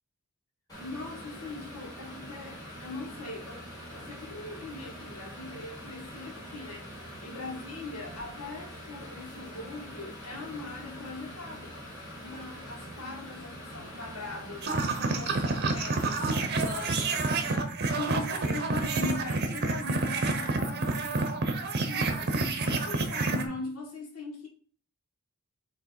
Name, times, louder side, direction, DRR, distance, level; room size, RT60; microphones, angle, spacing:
sound 1, 0.7-17.5, equal, 15° left, 2.7 m, -44 dB
voice 1, 0.8-3.7 3.9-6.9 7.2-11.8 12.1-24.5, left 3 dB, 65° left, 2.0 m, -41 dB
sound 2, 14.6-23.4, right 3 dB, 45° right, 0.9 m, -29 dB
6.5 x 3.1 x 4.7 m
head